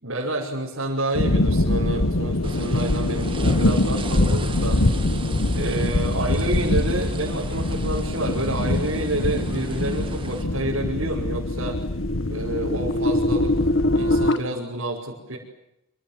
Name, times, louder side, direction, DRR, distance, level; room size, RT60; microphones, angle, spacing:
voice 1, 0.0-4.8 5.5-11.8 12.3-13.5 13.9-15.4, right 1 dB, 75° right, -3 dB, 5.7 m, -29 dB
sound 1, 1.1-14.3, left 1 dB, 75° left, 1.4 m, -24 dB
sound 2, 2.4-10.4, right 2 dB, 25° right, 2.0 m, -37 dB
sound 3, 9.6-14.4, left 1 dB, 60° left, 1.5 m, -25 dB
27.5 x 27.0 x 7.6 m, 0.85 s
head